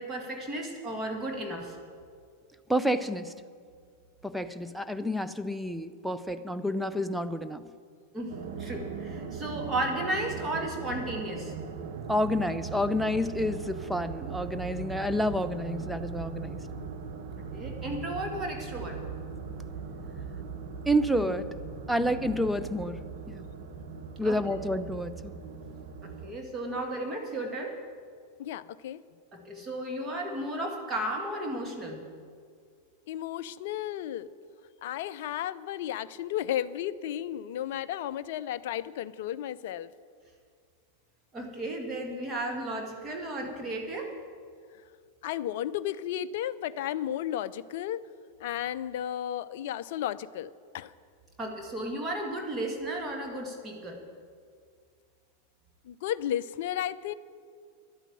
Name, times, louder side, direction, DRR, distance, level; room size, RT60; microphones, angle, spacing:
voice 1, 0.0-1.8 8.1-11.5 17.5-19.0 24.2-24.4 26.0-27.8 29.3-32.0 41.3-44.1 51.4-54.0, right 1 dB, 20° right, 1 dB, 2.0 m, -34 dB
voice 2, 2.7-3.3 4.2-7.6 12.1-16.6 20.9-21.5 21.9-23.0 23.3-23.5 24.2-25.3, equal, ahead, 9 dB, 0.6 m, -29 dB
sound 1, 8.3-26.3, right 5 dB, 50° right, 1.2 m, -39 dB
voice 3, 28.4-29.0 33.1-34.3 34.8-39.9 45.2-48.0 48.4-50.9 55.8-57.1, left 11 dB, 50° left, 15 dB, 0.5 m, -33 dB
11.5 x 9.0 x 9.3 m, 2.1 s
figure-of-eight pair, 90°, 0 cm